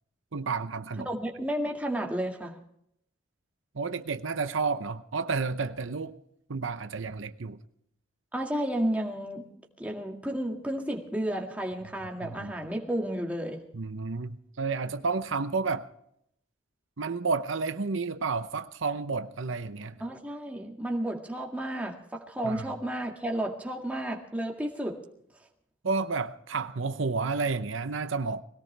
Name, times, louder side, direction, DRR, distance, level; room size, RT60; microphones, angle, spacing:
voice 1, 0.3-1.1 3.7-6.2 6.5-7.6 12.2-12.5 13.7-15.9 17.0-20.0 22.4-22.7 25.8-28.4, right 4 dB, 75° right, 0.8 m, -31 dB
voice 2, 1.1-2.6 8.3-13.6 20.0-25.0, right 1 dB, 5° right, 2.0 m, -32 dB
21.0 x 17.5 x 3.4 m
head